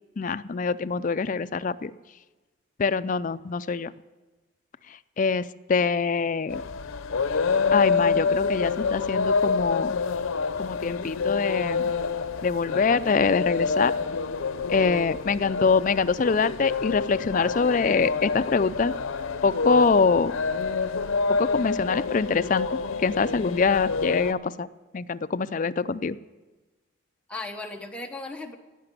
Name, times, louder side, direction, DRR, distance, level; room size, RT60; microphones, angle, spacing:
voice 1, 0.2-1.9 2.8-3.9 5.2-6.6 7.7-10.0 10.6-11.9 12.4-13.9 14.7-18.9 19.4-20.3 21.4-24.7 24.9-26.2, left 4 dB, 40° left, 13 dB, 0.4 m, -24 dB
sound 1, 6.5-24.3, left 4 dB, 85° left, 0.6 m, -27 dB
voice 2, 27.3-28.6, left 2 dB, 5° left, 2 dB, 1.1 m, -37 dB
17.5 x 5.9 x 9.7 m, 1.2 s
head